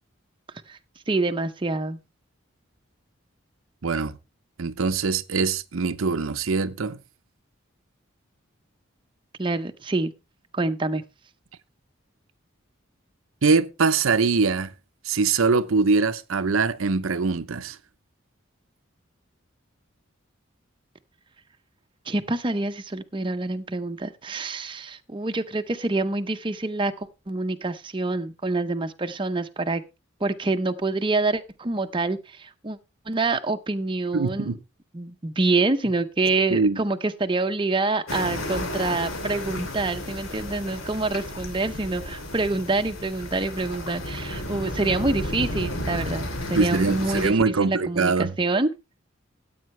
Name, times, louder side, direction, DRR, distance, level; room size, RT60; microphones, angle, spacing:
voice 1, 1.1-2.0 9.4-10.1 10.5-11.0 22.1-29.8 30.2-32.8 33.1-34.6 34.9-48.7, right 3 dB, 25° right, 0.6 m, -26 dB
voice 2, 3.8-4.2 4.6-7.0 13.4-14.7 15.0-17.8 34.1-34.6 36.5-36.8 46.6-48.3, right 4 dB, 80° right, 0.7 m, -23 dB
sound 1, 38.1-47.3, left 1 dB, 75° left, 3.0 m, -32 dB
14.0 x 8.6 x 3.2 m
head